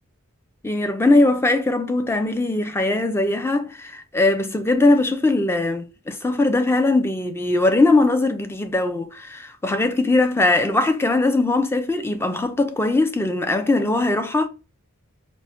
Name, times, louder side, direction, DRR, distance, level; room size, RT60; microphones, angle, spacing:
voice 1, 0.6-14.5, left 2 dB, 10° left, 0.4 m, -20 dB
4.4 x 2.0 x 2.9 m
head